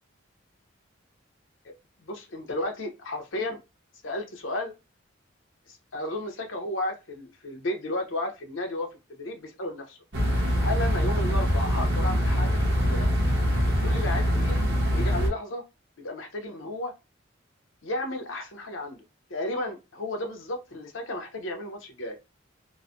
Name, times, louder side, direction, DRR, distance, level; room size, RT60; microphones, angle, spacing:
voice 1, 2.0-3.6 4.0-4.7 5.7-10.0 10.6-13.1 13.8-14.6 14.9-15.6 16.0-16.9 17.8-19.0 19.3-22.2, left 1 dB, 75° left, 4 dB, 0.8 m, -33 dB
sound 1, 10.1-15.3, equal, 60° right, 1.0 m, -24 dB
3.1 x 2.1 x 2.6 m, 0.25 s
head